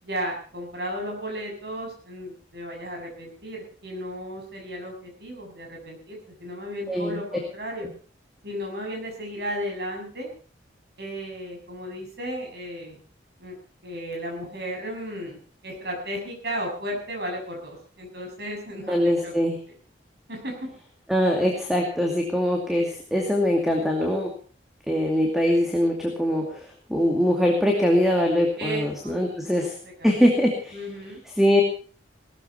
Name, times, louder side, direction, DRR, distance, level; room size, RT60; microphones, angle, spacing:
voice 1, 0.0-7.9 8.4-10.3 11.0-13.0 13.4-13.6 13.8-19.0 19.2-19.3 20.3-20.5 28.6-30.1 30.7-31.5, equal, 60° right, 2 dB, 7.1 m, -34 dB
voice 2, 6.9-7.2 18.9-19.6 21.1-24.3 24.9-29.8 30.0-30.8 31.4-31.6, equal, ahead, 1 dB, 2.4 m, -22 dB
19.0 x 14.0 x 4.4 m, 0.41 s
head